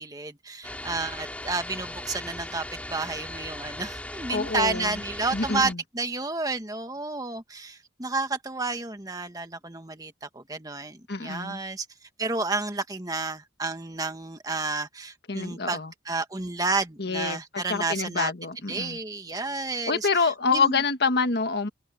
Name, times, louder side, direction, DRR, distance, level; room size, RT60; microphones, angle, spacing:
voice 1, 0.0-2.6 2.9-11.8 12.2-18.3 18.7-20.2 20.5-20.8, right 3 dB, 20° right, 1.7 m, -31 dB
sound 1, 0.6-5.7, left 1 dB, 10° left, 3.2 m, -38 dB
voice 2, 4.3-5.0 5.3-5.8 11.1-11.6 15.3-15.9 17.0-17.4 17.7-19.0 19.9-21.7, left 4 dB, 60° left, 1.5 m, -26 dB
head